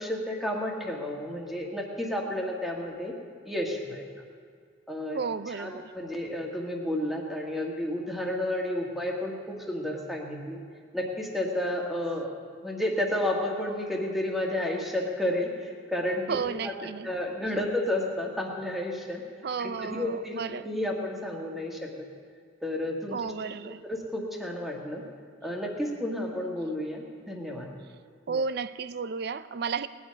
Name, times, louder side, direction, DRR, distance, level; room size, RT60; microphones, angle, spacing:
voice 1, 0.0-3.1 3.5-4.0 4.9-5.2 5.5-10.6 10.9-12.3 12.6-16.7 17.0-19.2 19.6-21.9 22.6-23.2 23.6-25.0 25.4-27.7, left 1 dB, ahead, 1.8 m, -31 dB
voice 2, 5.1-5.9 16.3-17.4 19.4-20.7 23.1-23.8 28.3-29.9, right 5 dB, 60° right, 0.4 m, -33 dB
19.0 x 10.0 x 5.3 m
head